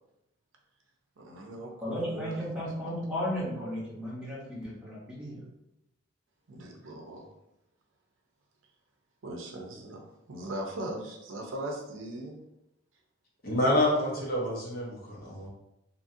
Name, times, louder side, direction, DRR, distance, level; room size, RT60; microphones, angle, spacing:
voice 1, 1.2-2.6 6.5-7.3 9.2-12.4, right 1 dB, 75° right, 1 dB, 0.5 m, -39 dB
voice 2, 1.8-5.4, equal, 5° right, -8 dB, 0.9 m, -34 dB
voice 3, 13.4-15.5, left 1 dB, 50° left, -4 dB, 0.8 m, -27 dB
2.7 x 2.6 x 2.6 m, 0.86 s
head